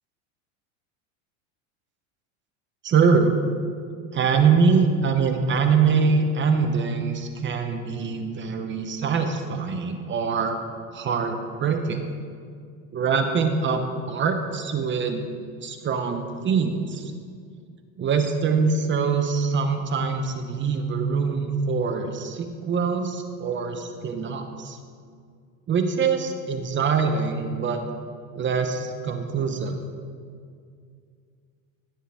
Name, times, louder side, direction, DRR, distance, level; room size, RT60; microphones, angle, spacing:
voice 1, 2.8-3.3 4.1-10.6 10.9-12.0 12.9-13.8 14.1-15.2 15.6-17.1 18.0-24.8 25.7-27.8 28.3-29.8, right 5 dB, 30° right, 6 dB, 0.9 m, -24 dB
16.5 x 7.4 x 3.5 m, 2.2 s
supercardioid pair, 115°, 40 cm